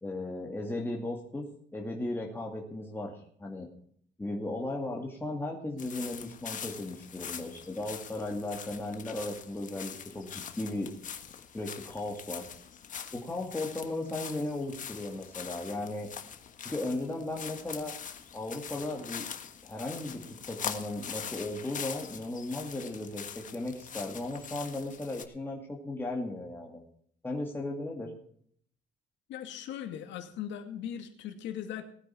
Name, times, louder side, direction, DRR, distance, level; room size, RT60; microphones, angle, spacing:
voice 1, 0.0-1.5 1.7-3.7 4.2-10.9 11.5-12.5 13.1-16.1 16.6-17.9 18.3-19.3 19.6-26.8 27.2-28.1, left 2 dB, 10° left, -1 dB, 2.3 m, -36 dB
sound 1, 5.8-25.2, left 8 dB, 45° left, 1.4 m, -43 dB
voice 2, 29.3-31.9, left 9 dB, 80° left, 6 dB, 2.3 m, -39 dB
19.0 x 9.5 x 4.5 m, 0.62 s
cardioid pair, 130°, 19 cm